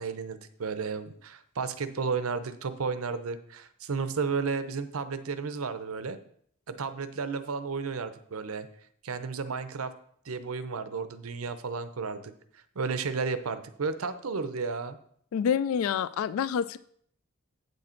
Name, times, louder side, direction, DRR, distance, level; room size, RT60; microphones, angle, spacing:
voice 1, 0.0-6.2 6.7-8.7 9.0-9.9 10.2-15.0, right 5 dB, 85° right, 12 dB, 0.7 m, -33 dB
voice 2, 15.3-16.8, left 7 dB, 80° left, 17 dB, 0.3 m, -27 dB
8.4 x 6.3 x 4.4 m, 0.64 s
head